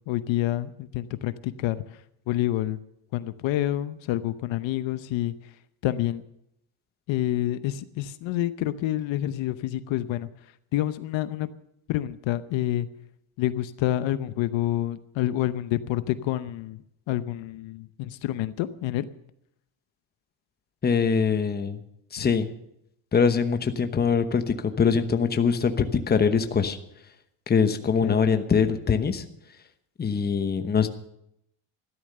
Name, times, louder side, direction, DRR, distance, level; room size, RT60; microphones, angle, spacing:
voice 1, 0.1-2.0 2.3-2.8 3.1-5.5 5.8-6.2 7.1-10.3 10.7-11.5 11.9-12.9 13.4-16.8 17.1-19.1 22.2-22.3 28.0-28.2, left 14 dB, 65° left, 13 dB, 0.9 m, -28 dB
voice 2, 20.8-21.8 22.1-22.5 23.1-26.8 27.5-29.2 30.0-30.9, left 6 dB, 20° left, 8 dB, 1.0 m, -23 dB
14.0 x 12.5 x 6.6 m, 0.76 s
cardioid pair, 150°, 49 cm